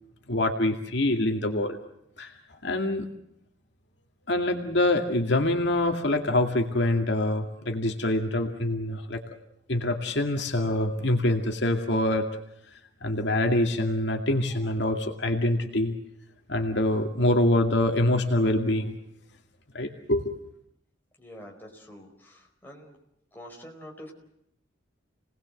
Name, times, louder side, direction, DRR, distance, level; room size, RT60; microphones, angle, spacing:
voice 1, 0.3-1.8 2.2-2.3 2.6-3.1 4.3-9.2 9.7-12.3 13.0-15.9 16.5-19.0 19.7-20.4, left 1 dB, 65° left, 4 dB, 2.3 m, -25 dB
voice 2, 21.2-23.0 23.3-24.1, equal, 10° left, 0 dB, 4.8 m, -46 dB
29.5 x 19.5 x 7.9 m, 0.78 s
head